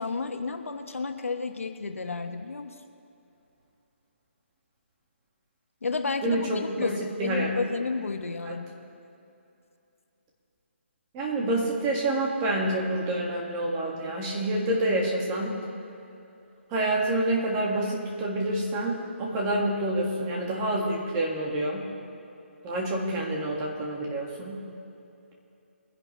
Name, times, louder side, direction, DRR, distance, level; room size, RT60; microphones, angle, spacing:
voice 1, 0.0-2.7 5.8-8.7, left 4 dB, 90° left, 6 dB, 1.2 m, -32 dB
voice 2, 6.2-7.5 8.5-8.6 11.1-15.6 16.7-21.9 22.6-24.6, right 1 dB, 20° right, -2 dB, 2.0 m, -28 dB
22.5 x 10.5 x 3.3 m, 2.8 s
hypercardioid pair, 165°, 7 cm